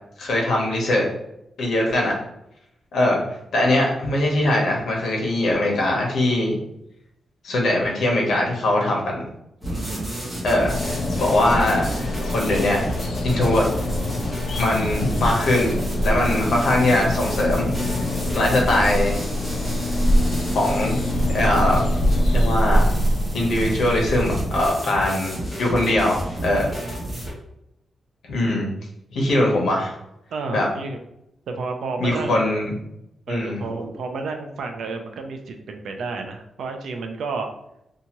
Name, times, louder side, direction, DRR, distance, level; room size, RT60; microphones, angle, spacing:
voice 1, 0.2-1.1 1.6-2.1 2.9-3.2 3.5-6.6 7.4-9.2 10.4-12.8 13.2-13.7 14.6-15.7 16.0-17.7 18.0-18.1 18.3-19.2 20.5-21.0 21.3-21.9 22.3-22.9 23.3-26.7 28.3-28.7 29.1-30.0 30.5-30.7 32.0-32.7 33.3-33.6, left 1 dB, 70° left, -1 dB, 0.9 m, -21 dB
sound 1, 9.6-27.3, right 1 dB, 15° right, 1.0 m, -31 dB
voice 2, 9.7-10.5 26.5-27.3 30.3-31.0 31.5-32.4 33.3-37.5, right 4 dB, 75° right, 5 dB, 0.4 m, -31 dB
sound 2, 10.7-24.7, left 1 dB, 85° left, 0.5 m, -24 dB
2.7 x 2.4 x 2.9 m, 0.81 s
wide cardioid pair, 165°, 0 cm